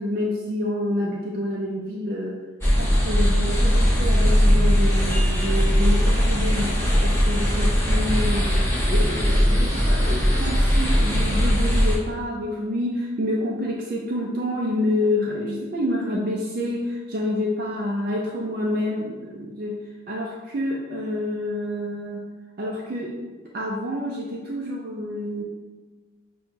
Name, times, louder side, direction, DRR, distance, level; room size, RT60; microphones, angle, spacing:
voice 1, 0.0-2.4 2.8-19.8 20.1-22.3 22.6-23.1 23.5-25.4, left 1 dB, 50° right, -3 dB, 0.4 m, -28 dB
sound 1, 2.6-12.0, equal, 10° left, 1.1 m, -19 dB
6.0 x 2.3 x 2.8 m, 1.3 s
head